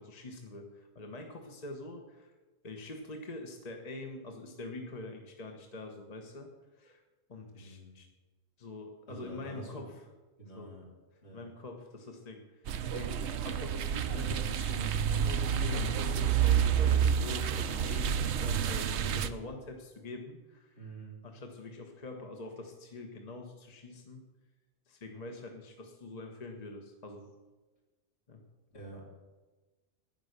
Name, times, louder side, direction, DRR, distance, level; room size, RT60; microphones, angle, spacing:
voice 1, 0.0-2.3 2.6-7.0 7.3-8.1 8.6-10.0 10.5-10.7 11.3-20.9 21.2-24.3 24.9-27.3 28.3-28.4, left 2 dB, 35° left, 3 dB, 1.1 m, -44 dB
voice 2, 7.5-7.9 9.1-9.9 10.4-10.8 11.2-11.4 20.7-21.2 28.7-29.0, right 2 dB, 70° left, -3 dB, 3.7 m, -47 dB
sound 1, 12.7-19.3, right 8 dB, 75° right, 0.9 m, -29 dB
10.5 x 9.6 x 6.7 m, 1.2 s
omnidirectional pair, 1.2 m